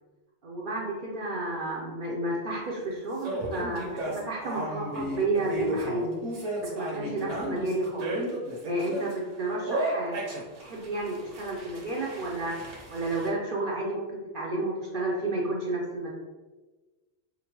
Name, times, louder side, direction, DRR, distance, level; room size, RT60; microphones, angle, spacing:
voice 1, 0.4-6.2 6.6-8.1 8.6-16.1, right 2 dB, 55° right, -3 dB, 0.7 m, -31 dB
sound 1, 3.2-9.1 9.7-13.3, right 1 dB, 70° right, 1.2 m, -34 dB
5.1 x 2.2 x 2.9 m, 1.2 s
omnidirectional pair, 1.2 m